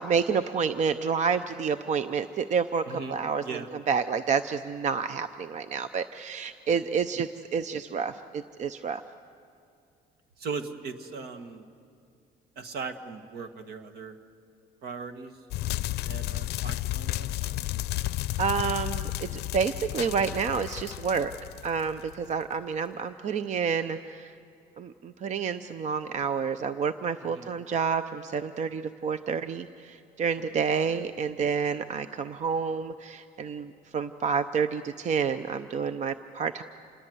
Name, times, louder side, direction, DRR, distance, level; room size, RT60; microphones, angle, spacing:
voice 1, 0.0-3.4 3.9-9.0 18.4-21.3 21.6-24.3 24.8-36.6, right 6 dB, 45° right, 11 dB, 0.7 m, -29 dB
voice 2, 2.9-3.7 10.4-11.7 12.5-14.2 14.8-15.3 16.0-17.6 27.3-27.5 30.9-31.0, right 5 dB, 70° right, 8 dB, 1.7 m, -39 dB
sound 1, 15.5-22.3, left 16 dB, 75° left, 0.5 m, -32 dB
27.5 x 21.0 x 8.0 m, 2.5 s
cardioid pair, 110°, 17 cm